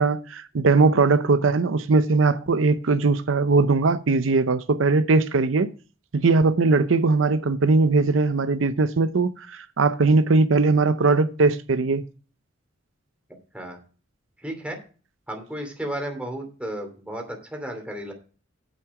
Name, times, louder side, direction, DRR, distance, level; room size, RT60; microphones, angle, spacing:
voice 1, 0.0-5.7 6.1-12.0, right 3 dB, 80° right, 0.6 m, -20 dB
voice 2, 14.4-14.8 15.3-18.1, right 1 dB, 5° right, 2.8 m, -33 dB
8.9 x 8.5 x 4.7 m
head